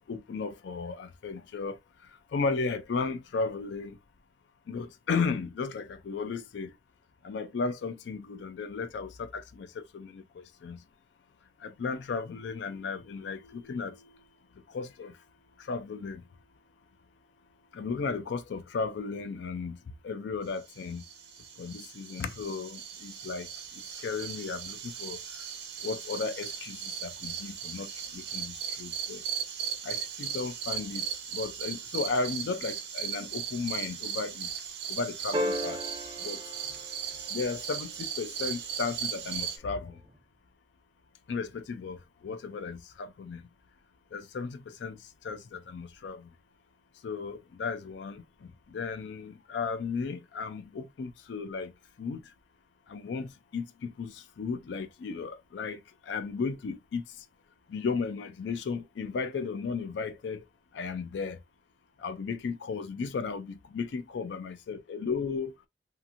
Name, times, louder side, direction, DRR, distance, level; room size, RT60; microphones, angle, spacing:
voice 1, 0.0-1.8 2.3-4.0 4.7-6.7 7.2-10.8 11.6-14.1 14.7-15.1 15.6-16.2 17.7-19.8 20.0-21.0 21.6-23.5 24.0-25.2 25.8-29.2 29.8-31.1 31.3-34.5 34.9-35.8 36.2-36.4 37.3-40.0 41.3-43.4 44.1-45.0 45.2-46.3 47.0-51.7 52.0-52.2 52.9-55.8 56.1-57.0 57.7-60.4 60.7-61.4 62.0-65.5, left 4 dB, 85° left, 0.4 m, -35 dB
sound 1, 20.7-39.6, right 8 dB, 70° right, 0.6 m, -37 dB
sound 2, 35.3-37.9 40.1-40.2, equal, 25° right, 0.6 m, -35 dB
2.8 x 2.5 x 2.4 m
head